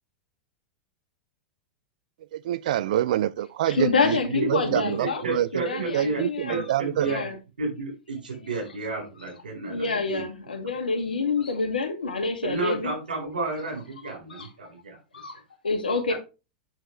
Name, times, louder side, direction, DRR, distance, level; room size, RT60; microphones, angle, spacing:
voice 1, 2.3-7.1, right 12 dB, 60° right, 0.5 m, -27 dB
voice 2, 3.7-5.2 5.5-6.7 7.0-7.3 9.7-12.9 14.3-14.5 15.1-16.1, left 4 dB, 75° left, 2.0 m, -27 dB
voice 3, 4.3-6.2 6.5-7.3 7.6-10.2 12.4-15.0, right 3 dB, 75° right, 4.1 m, -32 dB
7.5 x 6.5 x 3.1 m
figure-of-eight pair, 95°, 5 cm